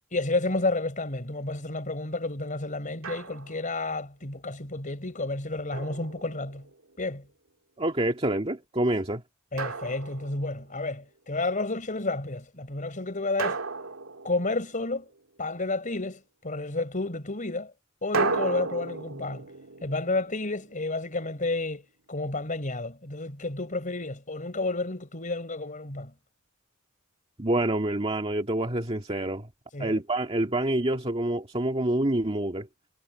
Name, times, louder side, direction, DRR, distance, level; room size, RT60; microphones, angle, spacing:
voice 1, 0.1-6.6 7.0-7.2 9.5-13.6 14.2-15.0 15.4-17.7 18.0-19.4 19.8-21.8 22.1-26.1 29.7-30.0, left 2 dB, 40° left, 5.0 m, -31 dB
Drum, 3.0-3.7 5.7-6.8 9.6-10.7 13.4-15.0 18.1-21.1, right 4 dB, 80° right, 2.4 m, -34 dB
voice 2, 7.8-9.2 27.4-29.5 29.8-32.7, right 1 dB, 30° right, 1.9 m, -27 dB
head